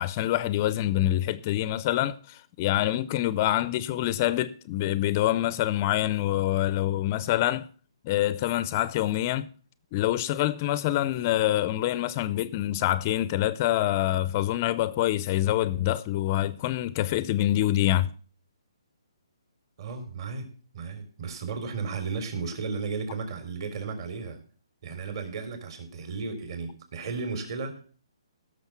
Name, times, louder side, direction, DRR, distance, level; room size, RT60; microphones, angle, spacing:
voice 1, 0.0-7.7 8.0-9.5 9.9-18.1, left 14 dB, 25° left, 0.5 m, -26 dB
voice 2, 19.8-24.4 24.8-27.8, right 4 dB, 50° right, 3.8 m, -34 dB
16.5 x 6.6 x 6.0 m
hypercardioid pair, 160°, 3 cm